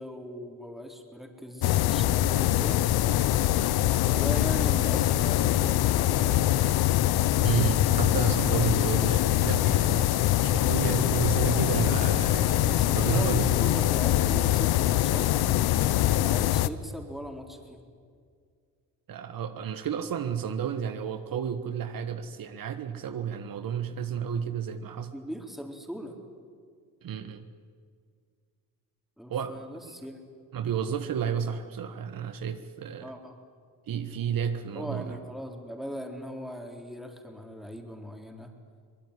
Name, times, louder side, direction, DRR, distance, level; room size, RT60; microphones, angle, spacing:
voice 1, 0.0-2.8 4.1-6.6 12.7-15.5 16.2-17.8 25.1-26.2 29.2-30.2 33.0-33.4 34.7-38.5, equal, ahead, 2 dB, 4.0 m, -39 dB
sound 1, 1.6-16.7, left 14 dB, 80° left, 0.9 m, -23 dB
voice 2, 7.4-13.6 19.1-25.1 27.0-27.4 29.3-29.6 30.5-33.1 33.9-35.2, right 8 dB, 65° right, 9 dB, 1.4 m, -31 dB
24.0 x 20.0 x 9.9 m, 2.1 s
cardioid pair, 85°, 37 cm